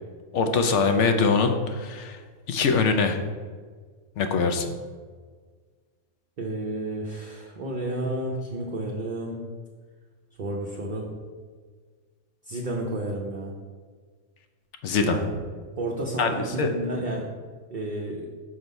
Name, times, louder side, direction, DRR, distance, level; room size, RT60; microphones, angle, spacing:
voice 1, 0.3-2.2 2.5-3.2 4.2-4.7 14.8-15.2 16.2-16.3 16.6-16.7, left 4 dB, 65° left, 6 dB, 0.9 m, -22 dB
voice 2, 6.4-9.4 10.4-11.1 12.5-13.5 15.0-15.3 15.8-17.3 17.7-18.3, right 1 dB, 45° right, -1 dB, 0.7 m, -31 dB
6.2 x 3.9 x 5.2 m, 1.5 s
omnidirectional pair, 1.5 m